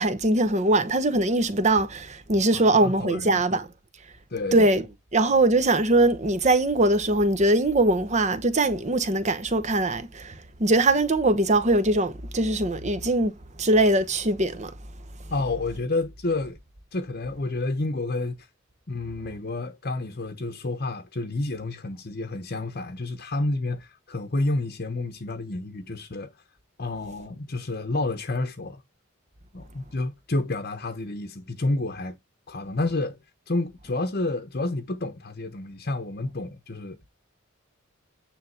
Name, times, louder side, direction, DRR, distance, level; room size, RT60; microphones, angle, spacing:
voice 1, 0.0-3.7 4.5-4.8 5.1-13.3 13.6-14.7, right 2 dB, 35° right, 1.0 m, -22 dB
voice 2, 2.5-3.4 4.3-4.7 15.3-16.6 16.9-18.5 18.9-26.3 26.8-28.8 29.5-32.2 32.5-37.1, left 2 dB, 45° left, 0.9 m, -30 dB
9.6 x 3.5 x 5.9 m
head